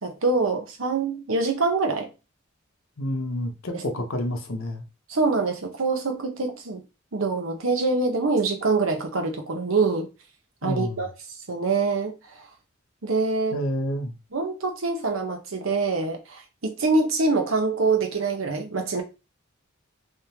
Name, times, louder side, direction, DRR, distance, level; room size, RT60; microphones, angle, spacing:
voice 1, 0.0-2.1 3.7-3.8 5.1-6.8 7.1-10.1 10.6-11.1 11.5-12.5 13.0-13.6 14.3-19.0, right 3 dB, 75° right, 0.9 m, -25 dB
voice 2, 3.0-4.8 10.6-11.1 13.5-14.2, left 1 dB, 75° left, 0.8 m, -29 dB
3.6 x 3.2 x 2.9 m
head